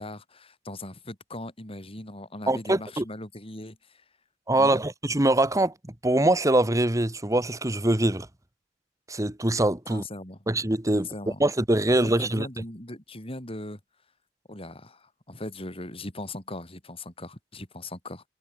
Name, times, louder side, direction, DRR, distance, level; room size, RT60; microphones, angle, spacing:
voice 1, 0.0-4.0 4.6-4.8 9.9-10.4 10.9-11.4 11.9-13.8 14.5-18.2, left 1 dB, 30° left, 5.5 m, -39 dB
voice 2, 2.5-3.0 4.5-5.7 6.0-8.3 9.1-10.0 10.5-11.1 11.4-12.5, right 1 dB, 20° right, 1.4 m, -23 dB
head